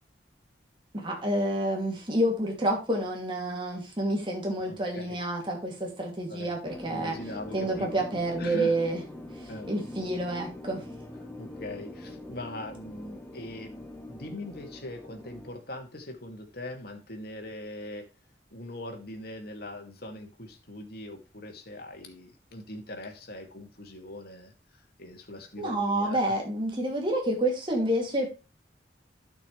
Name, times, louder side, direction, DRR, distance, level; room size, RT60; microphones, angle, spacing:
voice 1, 0.9-7.2 7.5-9.0 9.3-10.8 25.6-28.3, right 1 dB, 30° right, 2.6 m, -29 dB
voice 2, 4.7-5.2 6.3-6.5 6.9-7.9 8.4-8.7 9.5-9.7 11.4-13.8 14.1-18.1 18.5-26.2, left 1 dB, 60° left, 2.4 m, -41 dB
sound 1, 6.6-15.5, left 1 dB, 10° left, 1.2 m, -43 dB
12.5 x 6.2 x 3.3 m
head